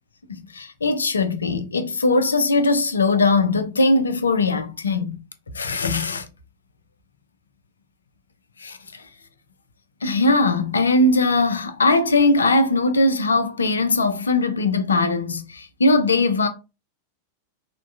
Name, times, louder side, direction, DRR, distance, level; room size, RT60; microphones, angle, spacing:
voice 1, 0.3-5.2 5.5-6.3 8.6-9.0 10.0-16.5, left 2 dB, 75° left, 0.5 m, -20 dB
3.4 x 2.1 x 2.6 m
figure-of-eight pair, 90°, 0 cm